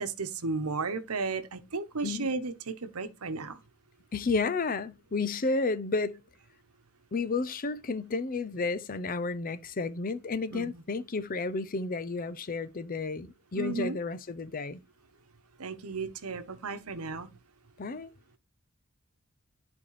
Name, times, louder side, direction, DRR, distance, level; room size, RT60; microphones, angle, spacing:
voice 1, 0.0-3.6 10.5-10.8 13.5-14.0 15.6-17.3, right 4 dB, 90° right, 1.0 m, -34 dB
voice 2, 4.1-6.2 7.1-14.8 17.8-18.1, left 3 dB, 40° left, 0.6 m, -32 dB
11.0 x 4.5 x 3.1 m
head